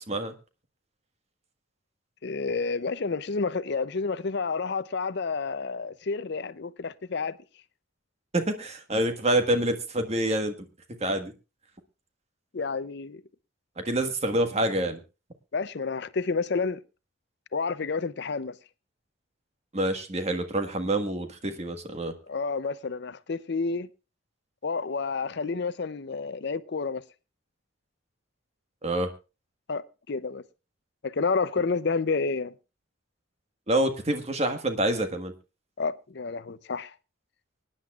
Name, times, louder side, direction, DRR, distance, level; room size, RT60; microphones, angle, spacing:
voice 1, 2.2-7.4 12.5-13.2 15.5-16.8 17.5-18.5 22.3-23.9 24.6-27.0 29.7-30.4 31.0-32.5 35.8-36.9, left 4 dB, 55° left, 0.5 m, -30 dB
voice 2, 8.3-10.5 11.0-11.3 13.8-15.0 19.7-22.1 28.8-29.1 33.7-35.3, right 1 dB, 30° right, 1.5 m, -27 dB
24.5 x 10.0 x 2.4 m
head